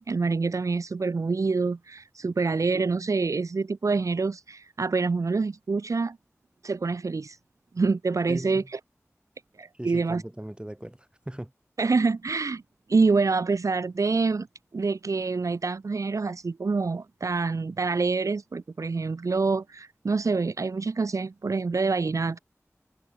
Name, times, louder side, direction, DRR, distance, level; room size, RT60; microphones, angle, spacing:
voice 1, 0.0-6.2 6.6-7.4 7.7-8.8 9.6-10.2 11.8-12.6 12.9-14.5 14.7-22.4, right 4 dB, 85° right, 0.6 m, -26 dB
voice 2, 8.3-8.7 9.7-11.5, right 1 dB, 20° right, 6.6 m, -38 dB
wide cardioid pair, 50°, 5 cm